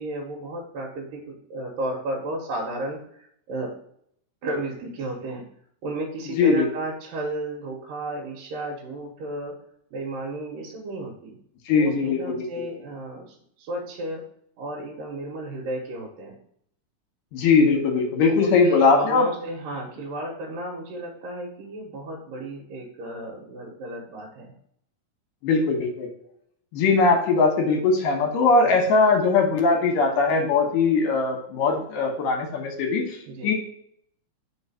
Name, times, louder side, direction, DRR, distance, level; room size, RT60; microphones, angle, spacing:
voice 1, 0.0-3.7 4.4-5.4 5.8-9.6 9.9-11.4 11.7-14.2 14.6-16.4 18.2-24.5 28.6-28.7 33.3-33.5, right 1 dB, 80° right, -3 dB, 2.7 m, -33 dB
voice 2, 6.3-6.7 11.6-12.5 17.3-19.3 25.4-26.1 26.7-33.5, left 4 dB, 75° left, 3 dB, 2.7 m, -20 dB
4.8 x 4.7 x 5.5 m, 0.69 s
omnidirectional pair, 3.9 m